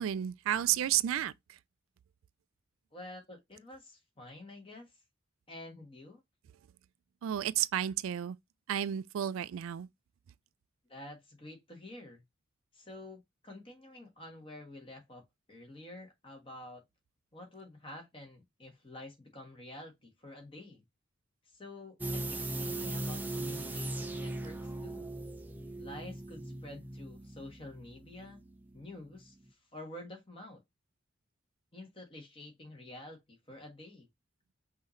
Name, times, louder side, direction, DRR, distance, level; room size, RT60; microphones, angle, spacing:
voice 1, 0.0-1.6 7.2-8.4 8.7-9.9, right 11 dB, 80° right, 0.3 m, -32 dB
voice 2, 2.9-4.9 5.5-6.2 10.9-12.2 12.7-15.2 15.5-16.8 17.3-20.8 21.5-25.1 25.8-28.4 28.7-30.6 31.7-34.1, left 1 dB, 25° left, 1.4 m, -49 dB
sound 1, 22.0-28.8 29.1-29.2, right 2 dB, 10° right, 0.4 m, -39 dB
5.6 x 2.7 x 3.1 m
head